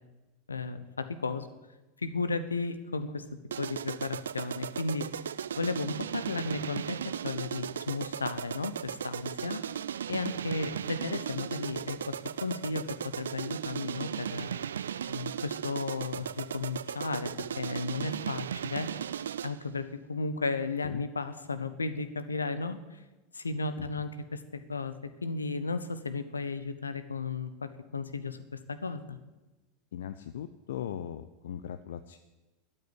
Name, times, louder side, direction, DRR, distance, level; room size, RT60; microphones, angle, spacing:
voice 1, 0.5-1.5 2.0-3.3 3.6-5.1 5.6-7.0 7.2-9.6 10.1-12.1 12.4-14.5 15.1-18.9 19.4-22.8 23.3-24.9 25.2-28.4 28.7-29.2, left 3 dB, 80° left, 12 dB, 1.1 m, -34 dB
sound 1, 3.5-19.7, right 9 dB, 70° right, 0.4 m, -36 dB
voice 2, 29.9-32.2, left 10 dB, 60° left, 12 dB, 0.6 m, -39 dB
13.0 x 9.0 x 9.9 m, 1.1 s
figure-of-eight pair, 85°, 0 cm